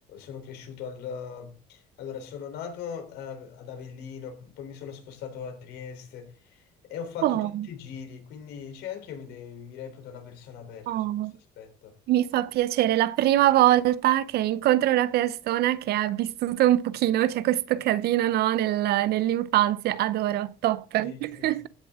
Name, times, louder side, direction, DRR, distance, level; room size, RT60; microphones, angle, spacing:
voice 1, 0.1-11.1 11.6-12.0 21.0-21.6, left 7 dB, 85° left, 3.5 m, -40 dB
voice 2, 7.2-7.6 10.9-11.3 12.1-21.7, right 14 dB, 70° right, 0.6 m, -23 dB
15.5 x 6.7 x 3.6 m
cardioid pair, 110°, 17 cm